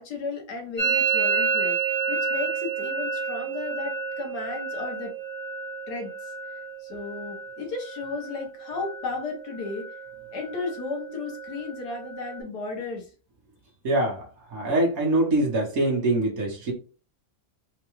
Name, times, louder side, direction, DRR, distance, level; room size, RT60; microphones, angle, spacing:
voice 1, 0.0-1.8 2.1-5.1 5.9-6.3 6.8-9.9 10.3-13.1, left 3 dB, 75° left, 1.6 m, -34 dB
Musical instrument, 0.8-8.4 8.7-9.3 9.5-10.1 10.4-12.4, right 5 dB, 20° right, 1.5 m, -30 dB
voice 2, 13.8-14.2 14.5-16.7, right 1 dB, 60° right, 1.7 m, -23 dB
4.5 x 2.4 x 3.1 m
omnidirectional pair, 1.7 m